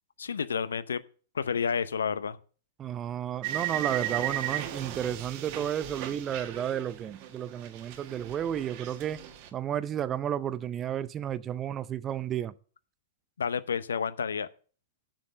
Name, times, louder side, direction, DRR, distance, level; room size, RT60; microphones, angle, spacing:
voice 1, 0.2-1.0 1.3-2.4 13.4-14.5, left 6 dB, 75° left, 0.7 m, -30 dB
voice 2, 2.8-9.2 9.5-12.5, right 10 dB, 25° right, 0.6 m, -32 dB
sound 1, 3.4-7.4 7.6-9.5, right 12 dB, 45° right, 1.4 m, -36 dB
7.6 x 7.2 x 7.5 m
figure-of-eight pair, 105°, 0 cm